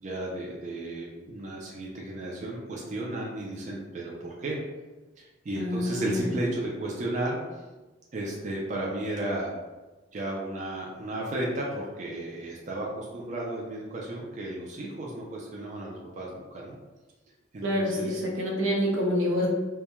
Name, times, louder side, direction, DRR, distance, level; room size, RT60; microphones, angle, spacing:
voice 1, 0.0-4.6 5.2-7.4 8.1-9.5 10.1-16.8 17.5-18.2, right 1 dB, 35° right, -3 dB, 0.3 m, -34 dB
voice 2, 5.6-6.3 17.6-19.5, equal, 85° right, -2 dB, 0.6 m, -27 dB
2.2 x 2.1 x 2.9 m, 1.2 s
head